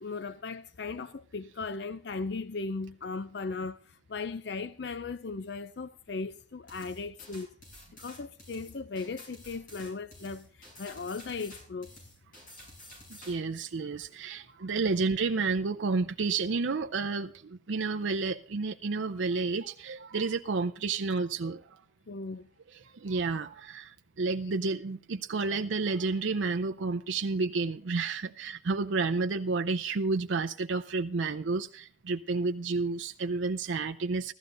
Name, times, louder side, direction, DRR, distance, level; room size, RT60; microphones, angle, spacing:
voice 1, 0.0-3.8 4.1-7.5 8.0-11.9 22.1-22.5, left 4 dB, 60° left, 0.5 m, -37 dB
sound 1, 6.7-13.3, left 1 dB, 45° left, 7.9 m, -50 dB
voice 2, 13.2-21.6 22.7-34.3, right 4 dB, 80° right, 0.6 m, -31 dB
15.0 x 13.5 x 3.8 m
head